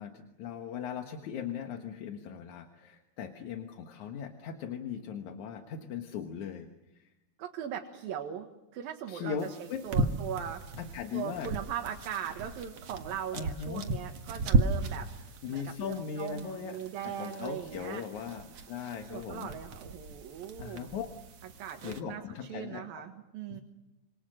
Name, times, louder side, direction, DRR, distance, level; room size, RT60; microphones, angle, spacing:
voice 1, 0.0-6.7 6.9-7.1 9.1-9.9 10.8-11.5 13.3-13.9 15.4-16.8 17.0-19.5 20.6-21.1 21.8-23.1 23.5-23.6, left 7 dB, 60° left, 5 dB, 2.5 m, -39 dB
voice 2, 7.4-8.5 8.7-10.6 11.1-15.1 15.5-18.1 19.1-20.9 21.6-23.6, right 9 dB, 75° right, 3 dB, 3.3 m, -39 dB
sound 1, 9.4-22.0, right 3 dB, 50° right, 2.3 m, -35 dB
27.0 x 27.0 x 6.4 m, 1.0 s
omnidirectional pair, 4.3 m